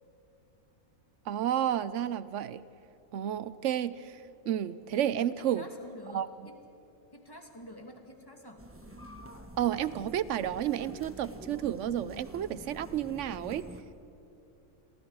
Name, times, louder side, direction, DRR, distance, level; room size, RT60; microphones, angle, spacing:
voice 1, 1.3-2.6 3.1-5.7 6.1-6.3 9.6-13.6, right 10 dB, 65° right, 16 dB, 0.9 m, -31 dB
voice 2, 5.4-6.6 7.1-8.6, left 1 dB, 15° left, 3 dB, 2.2 m, -48 dB
sound 1, 8.6-13.8, equal, 10° right, 1.2 m, -47 dB
29.5 x 22.5 x 4.8 m, 2.9 s
omnidirectional pair, 1.5 m